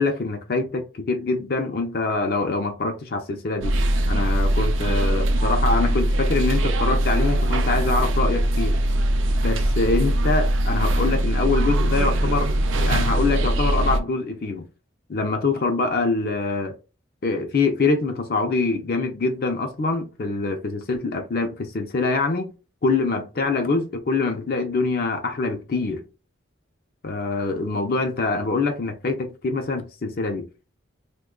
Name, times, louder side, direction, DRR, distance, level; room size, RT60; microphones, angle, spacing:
voice 1, 0.0-3.8 4.1-8.8 9.4-14.6 15.1-16.7 17.2-22.5 22.8-26.0 27.0-30.5, left 3 dB, 50° left, 0.4 m, -24 dB
sound 1, 3.6-14.0, right 1 dB, 80° right, 0.5 m, -21 dB
2.9 x 2.2 x 3.7 m
head